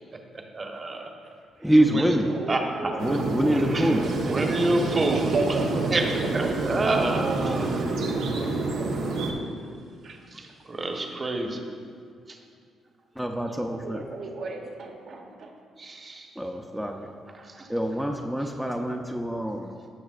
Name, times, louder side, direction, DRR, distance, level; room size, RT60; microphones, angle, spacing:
voice 1, 0.5-1.0 1.7-2.1 2.5-2.6 3.7-3.9 4.2-5.5 5.9-7.7 10.3-11.6 15.8-16.3 17.4-17.7, right 2 dB, 30° right, 2 dB, 1.1 m, -28 dB
voice 2, 1.6-2.3 2.8-4.1 13.2-14.1 16.4-17.1 17.7-19.8, right 1 dB, ahead, 1 dB, 0.6 m, -25 dB
voice 3, 2.3-7.9 8.1-8.9 10.0-10.2 13.8-15.5, right 3 dB, 65° right, 1 dB, 1.2 m, -35 dB
sound 1, 3.0-9.3, right 3 dB, 90° right, 1.1 m, -28 dB
15.5 x 6.0 x 2.5 m, 2.2 s
cardioid pair, 90°, 0 cm